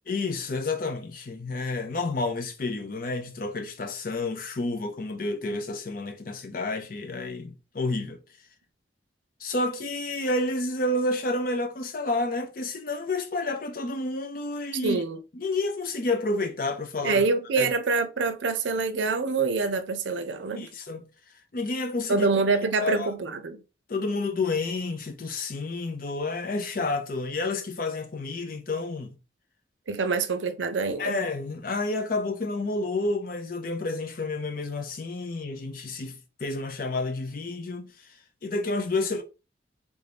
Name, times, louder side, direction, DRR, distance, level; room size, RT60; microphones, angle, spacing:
voice 1, 0.1-8.2 9.4-15.0 15.3-17.2 17.6-17.7 20.6-21.1 21.5-22.3 22.8-23.1 23.9-29.1 31.0-37.9 38.4-39.2, left 2 dB, 50° left, 0.5 m, -30 dB
voice 2, 14.8-15.2 17.0-20.7 22.1-23.6 29.9-31.2, right 4 dB, 85° right, 0.5 m, -26 dB
3.5 x 2.6 x 3.4 m
head